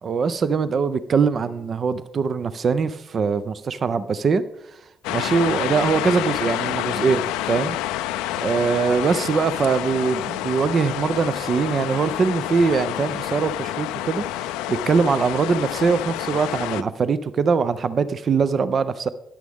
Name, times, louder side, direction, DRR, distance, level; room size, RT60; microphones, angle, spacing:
voice 1, 0.0-4.4 5.1-7.2 7.5-7.8 8.0-8.2 8.4-19.1, right 5 dB, 55° right, 14 dB, 0.6 m, -22 dB
sound 1, 5.0-16.8, left 14 dB, 80° left, 0.4 m, -28 dB
14.5 x 10.0 x 3.6 m, 0.83 s
hypercardioid pair, 45°, 0 cm